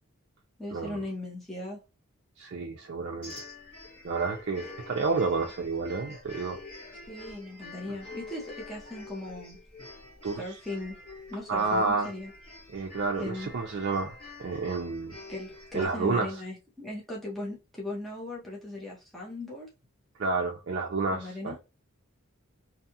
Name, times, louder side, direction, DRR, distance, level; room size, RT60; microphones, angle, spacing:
voice 1, 0.6-1.8 7.1-9.6 10.2-11.0 11.3-12.3 13.2-13.5 15.3-19.7 21.1-21.6, left 1 dB, ahead, 0.6 m, -38 dB
voice 2, 2.4-3.3 4.0-6.6 7.9-8.0 10.2-10.4 11.5-12.1 12.7-14.1 14.4-15.2 15.7-16.4 20.2-21.6, right 4 dB, 55° right, 0.4 m, -30 dB
sound 1, 3.2-15.9, left 3 dB, 25° left, 1.3 m, -47 dB
2.7 x 2.3 x 2.7 m
head